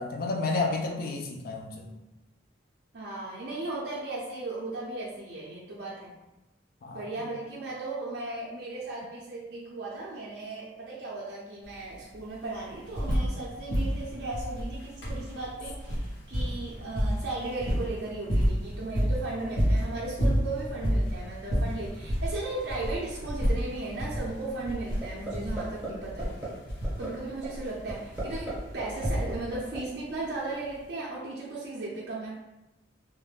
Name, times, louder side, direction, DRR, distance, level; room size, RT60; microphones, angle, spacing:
voice 1, 0.0-1.9 6.8-7.3, left 3 dB, 50° left, 2 dB, 0.3 m, -31 dB
voice 2, 2.9-6.1 6.9-26.4 27.0-32.3, right 2 dB, 55° right, -6 dB, 0.4 m, -36 dB
sound 1, 11.6-11.7 12.0-13.4 13.7-29.7 30.7-30.8, equal, 90° left, 0.9 m, -30 dB
sound 2, 25.0-25.3 25.6-25.9 26.2-26.5 26.8-27.1 27.4-27.5 27.9-28.5 28.8-29.8, right 3 dB, 10° right, 0.7 m, -35 dB
2.3 x 2.1 x 3.1 m, 1.0 s
head